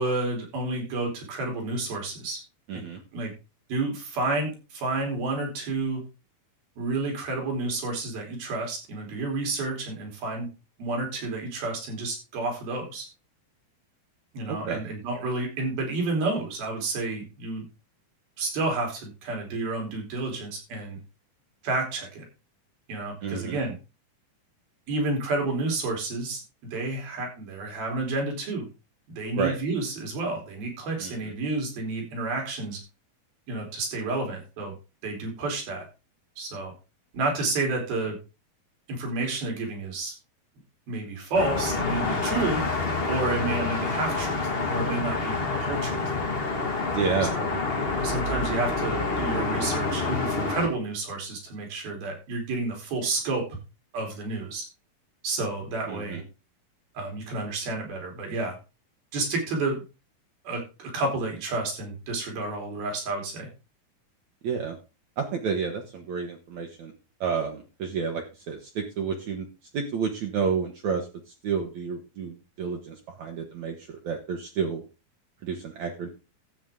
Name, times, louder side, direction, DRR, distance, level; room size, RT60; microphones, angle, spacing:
voice 1, 0.0-2.4 2.7-2.8 3.1-3.3 3.7-6.0 6.8-10.5 10.8-13.1 14.3-17.7 18.4-21.0 21.6-22.3 22.9-23.8 24.9-28.7 29.1-32.8 33.5-34.7 35.0-35.9 36.4-36.7 37.1-38.2 38.9-40.1 40.9-42.6 43.0-44.4 44.7-46.0 47.3-47.6 48.0-53.6 53.9-54.6 55.2-56.2 57.0-58.6 59.1-59.8 60.5-63.5, right 2 dB, 75° right, 2 dB, 5.4 m, -30 dB
voice 2, 2.7-3.0 14.5-14.8 23.2-23.6 29.4-29.6 31.0-31.3 46.9-47.3 55.9-56.2 64.4-64.8 65.2-66.9 67.2-69.5 69.7-71.1 71.4-74.8 75.4-76.1, right 6 dB, 60° right, 3 dB, 2.3 m, -30 dB
sound 1, 41.3-50.7, left 3 dB, 70° left, 0.5 m, -27 dB
13.0 x 8.5 x 3.7 m, 0.30 s
omnidirectional pair, 4.3 m